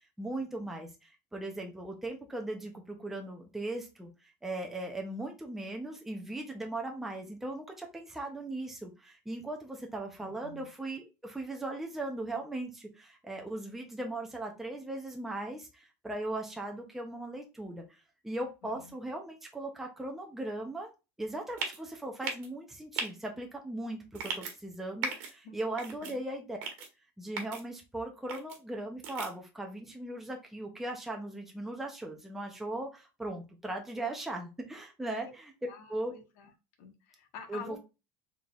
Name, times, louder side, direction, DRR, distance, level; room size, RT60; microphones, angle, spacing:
voice 1, 0.2-4.1 4.4-20.9 21.2-26.6 27.2-35.5 35.9-36.1 37.5-37.8, right 2 dB, 5° right, 1 dB, 0.6 m, -38 dB
voice 2, 10.2-10.7 18.6-18.8 25.4-25.6 26.0-26.2 35.2-35.3 35.7-36.5 36.8-37.8, left 6 dB, 70° left, 5 dB, 1.2 m, -48 dB
sound 1, 21.6-21.8 22.2-22.5 23.0-23.1 24.1-24.5 25.0-25.3 25.8-26.1 26.6-26.9 27.4-27.6 28.3-28.6 29.0-29.3, right 5 dB, 80° right, 1.2 m, -36 dB
4.1 x 3.5 x 2.4 m, 0.27 s
cardioid pair, 170°, 7 cm